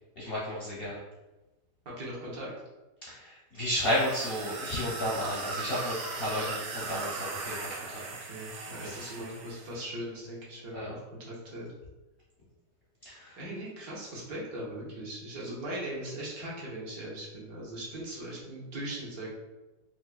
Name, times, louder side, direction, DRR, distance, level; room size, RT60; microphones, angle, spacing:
voice 1, 0.2-1.0 3.0-8.0 8.8-9.2 10.7-11.0 13.0-13.4, equal, 60° left, -7 dB, 0.6 m, -33 dB
voice 2, 2.0-2.5 8.3-11.7 13.4-19.3, right 1 dB, 65° right, -5 dB, 1.3 m, -39 dB
sound 1, 3.7-9.7, right 3 dB, 90° right, 1.2 m, -38 dB
4.5 x 2.0 x 2.3 m, 1.1 s
omnidirectional pair, 1.8 m